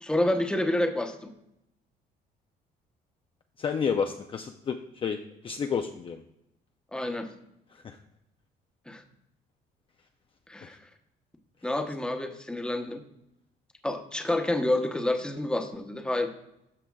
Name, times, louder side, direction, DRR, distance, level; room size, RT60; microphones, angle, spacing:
voice 1, 0.0-1.3 6.9-7.3 8.9-9.0 10.5-10.8 11.6-13.0 13.8-16.3, left 1 dB, 5° left, 5 dB, 0.8 m, -28 dB
voice 2, 3.6-5.2 5.4-6.2 7.7-8.0 10.6-10.7, left 6 dB, 30° left, 5 dB, 0.4 m, -30 dB
13.0 x 4.9 x 2.3 m, 0.82 s
cardioid pair, 110°, 17 cm